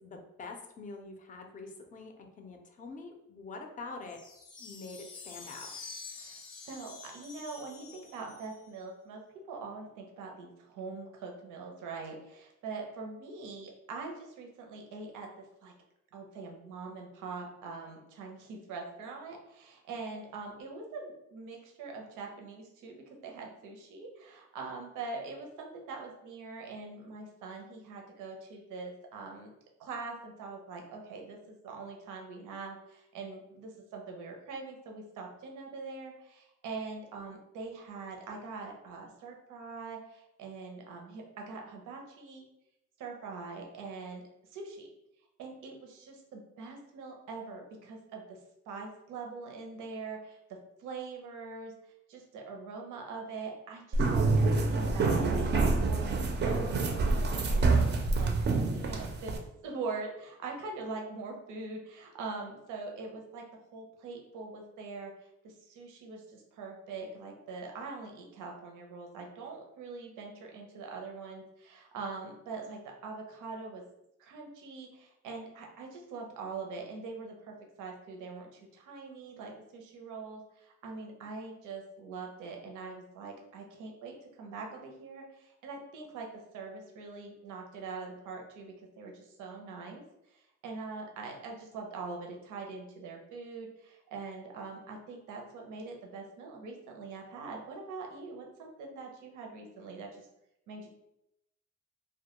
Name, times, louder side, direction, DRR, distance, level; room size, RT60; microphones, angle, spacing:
voice 1, 0.0-4.2 4.6-5.7, left 3 dB, 25° left, 4 dB, 0.4 m, -45 dB
sound 1, 4.1-8.8, left 4 dB, 80° left, 0.6 m, -48 dB
voice 2, 6.1-9.2 9.5-15.7 16.1-29.5 29.8-42.4 43.0-44.2 44.5-44.9 45.4-48.4 48.7-50.4 50.8-51.7 52.1-56.3 56.6-58.3 58.7-59.4 59.6-63.4 63.7-73.8 74.2-86.3 86.5-100.3 100.7-100.9, right 4 dB, 90° right, 1 dB, 0.6 m, -43 dB
sound 2, 53.9-59.4, right 3 dB, 35° right, 0.4 m, -27 dB
2.1 x 2.1 x 2.9 m, 0.84 s
cardioid pair, 90°, 30 cm